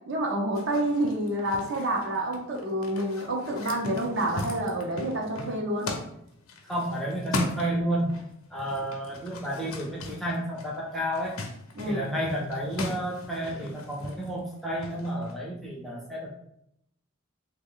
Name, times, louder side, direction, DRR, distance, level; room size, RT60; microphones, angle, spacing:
voice 1, 0.0-5.9 11.8-12.1, right 1 dB, 55° right, 0 dB, 0.7 m, -28 dB
sound 1, 0.5-8.3 8.5-15.3, left 2 dB, 85° left, 0.6 m, -38 dB
voice 2, 6.7-8.2 8.5-11.4 11.9-16.3, right 1 dB, ahead, -4 dB, 0.5 m, -31 dB
3.1 x 2.3 x 3.6 m, 0.75 s
head